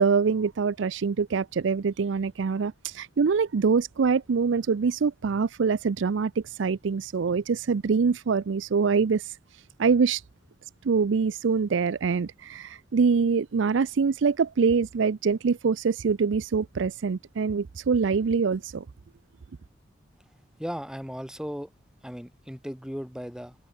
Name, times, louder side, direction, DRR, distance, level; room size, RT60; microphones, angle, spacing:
voice 1, 0.0-9.3 9.8-10.2 10.8-18.8, right 5 dB, 75° right, 0.5 m, -24 dB
voice 2, 20.6-21.7 22.0-23.5, equal, 5° right, 5.1 m, -36 dB
head